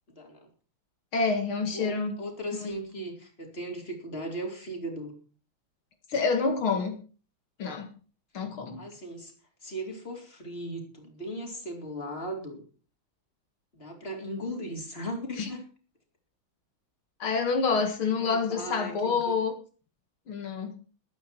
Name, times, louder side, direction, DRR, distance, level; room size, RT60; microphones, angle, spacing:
voice 1, 0.1-0.4 1.7-5.2 8.8-9.3 9.6-12.6 13.7-15.7 18.1-19.2, equal, 30° left, 2 dB, 4.3 m, -37 dB
voice 2, 1.1-2.1 2.6-2.7 6.1-7.0 7.6-7.9 8.3-8.9 15.4-15.5 17.2-19.5 20.3-20.8, left 4 dB, 80° left, 5 dB, 2.8 m, -27 dB
21.0 x 9.4 x 4.6 m, 0.37 s
omnidirectional pair, 2.2 m